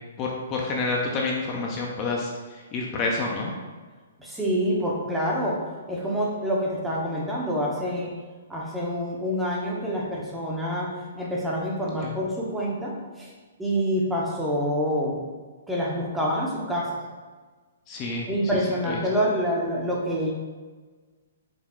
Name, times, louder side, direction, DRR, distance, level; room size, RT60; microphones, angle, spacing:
voice 1, 0.2-3.5 11.8-12.1 17.9-18.3 18.9-19.0, left 3 dB, 30° left, -1 dB, 0.6 m, -29 dB
voice 2, 4.2-5.6 5.9-8.1 8.5-13.3 13.6-15.2 15.7-17.0 18.3-20.3, equal, 5° right, -4 dB, 0.8 m, -27 dB
4.9 x 2.3 x 3.6 m, 1.4 s
hypercardioid pair, 135°, 0 cm